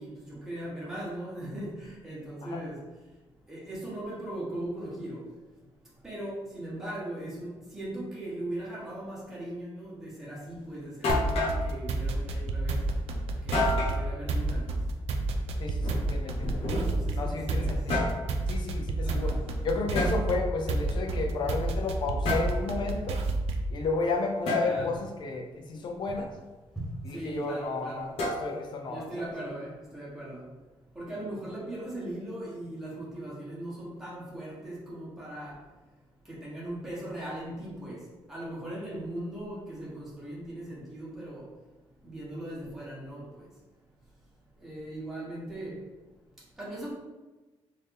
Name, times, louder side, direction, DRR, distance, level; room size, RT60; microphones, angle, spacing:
voice 1, 0.0-2.8 3.5-5.2 6.0-12.8 13.4-14.6 16.9-17.7 19.0-19.4 24.6-24.9 26.8-26.9 27.1-28.2 28.9-30.4 30.9-35.5 36.3-38.0 38.3-41.5 42.0-43.2 44.6-45.8 46.6-46.9, right 1 dB, 5° right, -8 dB, 1.0 m, -39 dB
sound 1, 10.5-10.6 11.0-11.6 13.5-14.0 15.7-17.1 17.7-18.2 19.9-20.2 22.2-22.6 24.5-24.7 28.2-28.7, left 2 dB, 85° left, 1.2 m, -29 dB
sound 2, 11.1-23.8, right 2 dB, 80° right, 0.4 m, -30 dB
voice 2, 15.6-16.6 17.1-18.1 18.5-19.3 19.6-23.2 23.7-26.3 27.0-29.3, left 3 dB, 50° left, 2 dB, 0.6 m, -32 dB
4.0 x 2.7 x 3.3 m, 1.2 s
cardioid pair, 160°, 10 cm